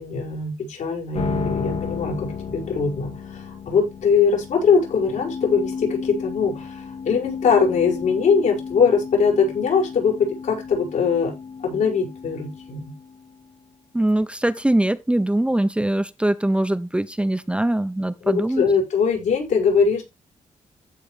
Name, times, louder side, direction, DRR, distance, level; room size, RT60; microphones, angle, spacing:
voice 1, 0.0-11.3 11.6-12.9 18.2-20.0, left 5 dB, 70° left, 6.5 m, -21 dB
sound 1, 1.1-13.5, left 6 dB, 50° left, 1.5 m, -33 dB
voice 2, 13.9-18.6, right 1 dB, 10° right, 0.7 m, -22 dB
15.0 x 5.2 x 3.3 m
cardioid pair, 75°, 13 cm